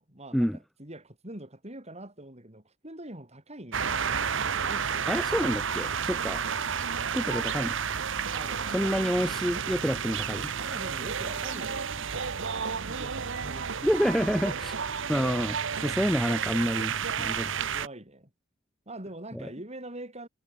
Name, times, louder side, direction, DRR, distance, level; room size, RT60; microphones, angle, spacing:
voice 1, 0.0-4.2 4.6-5.2 8.3-9.1 10.6-12.3 12.9-14.4 17.6-18.3 18.9-20.3, right 1 dB, 35° right, 7.8 m, -44 dB
sound 1, 3.7-17.9, right 6 dB, 65° right, 1.1 m, -31 dB
voice 2, 5.1-6.4 7.1-7.7 8.7-10.5 13.8-14.7 15.1-17.6 19.3-19.5, equal, ahead, 4.4 m, -28 dB
head